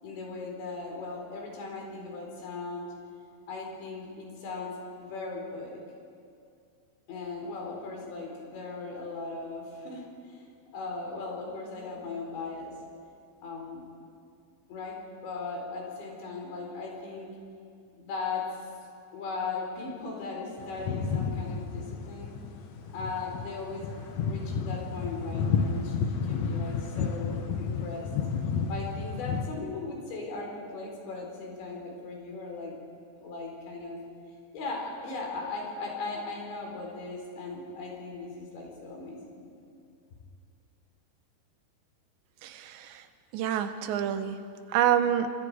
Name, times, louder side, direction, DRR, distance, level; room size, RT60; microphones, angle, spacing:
voice 1, 0.0-2.9 3.5-5.8 7.1-10.5 10.7-12.7 13.4-13.8 14.7-17.3 17.9-18.4 19.1-22.3 22.9-23.9 24.2-28.1 28.7-32.7 33.2-34.0 34.5-39.4, left 3 dB, 85° left, -1 dB, 6.7 m, -38 dB
sound 1, 20.6-29.5, left 5 dB, 70° left, 1.7 m, -31 dB
voice 2, 42.4-42.9 43.3-44.4 44.7-45.3, right 10 dB, 85° right, 9 dB, 3.3 m, -27 dB
28.0 x 25.0 x 5.0 m, 2.4 s
omnidirectional pair, 5.0 m